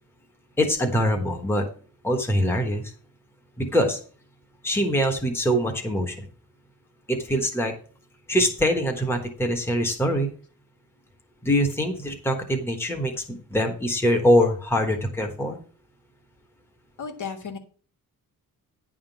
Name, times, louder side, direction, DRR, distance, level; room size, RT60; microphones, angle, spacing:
voice 1, 0.6-1.6 2.0-2.8 3.6-4.0 4.6-6.3 7.1-7.7 8.3-10.3 11.4-15.6, equal, 5° left, 2 dB, 1.2 m, -23 dB
voice 2, 17.0-17.6, left 6 dB, 55° left, 4 dB, 1.7 m, -34 dB
10.0 x 3.7 x 7.1 m, 0.41 s
wide cardioid pair, 155°, 36 cm